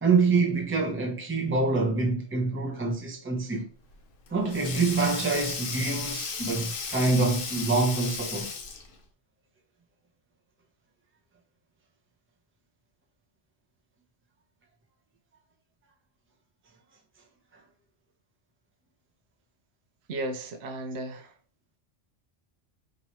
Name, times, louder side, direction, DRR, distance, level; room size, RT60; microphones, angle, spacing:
voice 1, 0.0-3.7 4.3-8.5, right 3 dB, 15° right, 0.6 m, -26 dB
Sink (filling or washing), 3.8-9.0, left 5 dB, 60° left, 0.8 m, -35 dB
voice 2, 20.1-21.3, right 1 dB, 75° right, 0.9 m, -34 dB
3.0 x 2.8 x 4.3 m
omnidirectional pair, 1.1 m